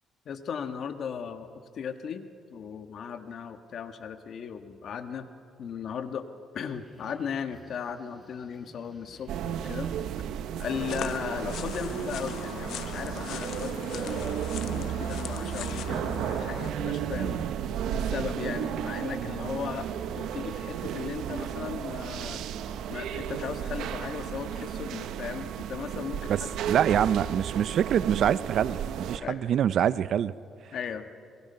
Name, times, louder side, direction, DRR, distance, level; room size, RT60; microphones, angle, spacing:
voice 1, 0.2-1.5 1.7-5.3 5.6-6.2 6.5-9.9 10.6-17.4 17.9-22.4 22.9-26.6 29.2-29.4 30.7-31.1, left 7 dB, 60° left, 8 dB, 1.5 m, -37 dB
sound 1, 6.6-24.1, right 1 dB, ahead, 5.9 m, -52 dB
sound 2, 9.3-29.2, right 9 dB, 85° right, 1.0 m, -33 dB
sound 3, 10.7-16.7, left 9 dB, 75° left, 1.0 m, -40 dB
voice 2, 26.7-30.3, right 9 dB, 65° right, 17 dB, 0.6 m, -25 dB
29.0 x 22.0 x 5.7 m, 2.4 s
cardioid pair, 105°, 0 cm